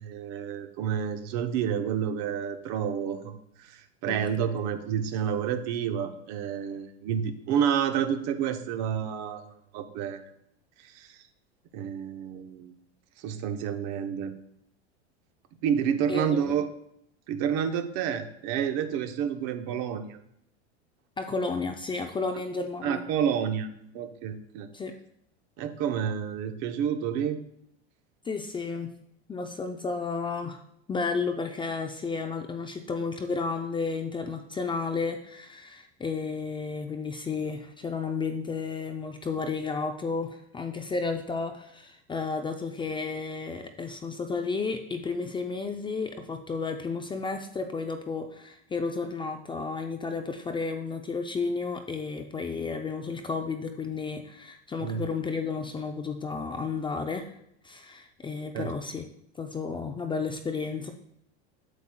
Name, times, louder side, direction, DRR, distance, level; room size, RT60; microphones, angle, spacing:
voice 1, 0.0-10.2 10.8-11.2 11.7-12.7 13.2-14.3 15.6-16.7 17.3-20.2 22.8-23.7 23.9-24.7 25.6-27.4 54.8-55.0 58.5-58.7, right 8 dB, 55° right, 8 dB, 0.8 m, -29 dB
voice 2, 16.1-16.5 21.2-23.0 24.7-24.9 28.2-28.9 29.3-30.6 30.9-57.3 57.6-59.0 59.4-60.9, left 4 dB, 15° left, 5 dB, 0.4 m, -32 dB
8.1 x 7.2 x 2.2 m, 0.74 s
supercardioid pair, 110°, 34 cm